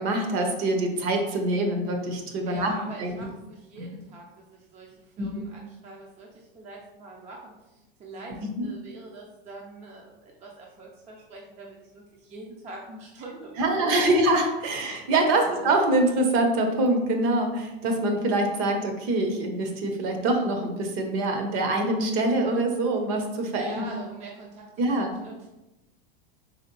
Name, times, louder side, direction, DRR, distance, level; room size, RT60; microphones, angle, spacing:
voice 1, 0.0-2.7 3.0-3.3 5.2-5.5 8.4-8.7 13.6-23.8 24.8-25.1, right 2 dB, 45° right, 4 dB, 0.9 m, -25 dB
voice 2, 2.5-14.1 15.4-15.6 23.6-24.7 25.2-25.5, right 2 dB, 20° right, -2 dB, 0.5 m, -43 dB
4.1 x 3.1 x 3.0 m, 0.96 s
supercardioid pair, 130°, 30 cm